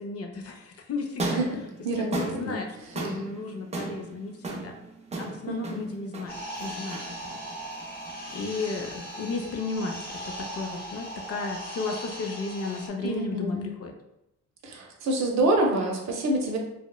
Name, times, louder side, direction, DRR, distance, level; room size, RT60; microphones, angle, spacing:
voice 1, 0.0-1.4 1.9-4.8 5.2-7.4 8.3-13.9, left 3 dB, 50° left, 3 dB, 0.5 m, -34 dB
sound 1, 1.1-9.3, right 2 dB, 20° right, 0.5 m, -36 dB
voice 2, 1.8-2.6 5.5-5.9 13.0-13.7 14.6-16.6, right 2 dB, 60° right, 1 dB, 0.6 m, -27 dB
sound 2, 6.3-12.9, right 1 dB, 30° left, 0.9 m, -39 dB
3.0 x 2.0 x 2.2 m, 0.85 s
cardioid pair, 90°, 30 cm